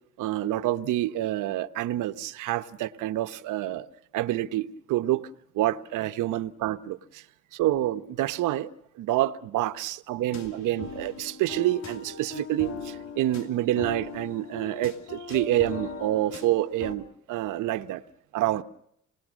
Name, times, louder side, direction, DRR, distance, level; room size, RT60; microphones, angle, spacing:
voice 1, 0.2-3.9 4.1-5.3 5.5-7.2 7.5-8.7 9.0-18.0 18.3-18.6, right 14 dB, 90° right, 0.9 m, -27 dB
sound 1, 10.3-17.0, left 5 dB, 65° left, 2.7 m, -40 dB
28.0 x 19.5 x 6.3 m
cardioid pair, 90°, 30 cm